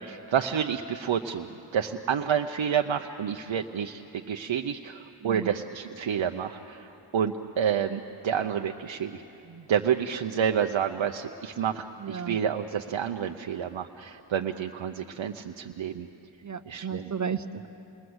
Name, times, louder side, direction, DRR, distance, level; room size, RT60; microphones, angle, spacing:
voice 1, 0.0-1.5 1.7-9.2 9.7-16.1 16.7-17.1, right 8 dB, 85° right, 4 dB, 0.7 m, -29 dB
voice 2, 12.0-12.4 16.4-17.7, right 6 dB, 40° right, 11 dB, 0.7 m, -34 dB
28.0 x 21.0 x 7.9 m, 3.0 s
wide cardioid pair, 65°, 45 cm